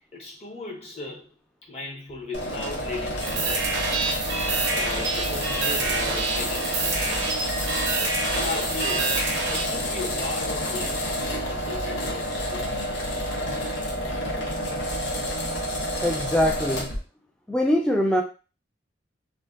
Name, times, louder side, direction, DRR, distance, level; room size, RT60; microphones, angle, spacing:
voice 1, 0.1-1.3 1.6-3.6 4.3-4.4 4.7-7.0 7.5-7.7 8.3-12.8, left 2 dB, 35° left, 0.7 m, -36 dB
sound 1, 2.3-17.0, equal, 75° left, 0.6 m, -29 dB
sound 2, 3.2-9.6, right 3 dB, 75° right, 0.6 m, -27 dB
voice 2, 16.0-16.9 17.5-18.2, equal, 5° left, 0.3 m, -23 dB
2.6 x 2.1 x 2.3 m
head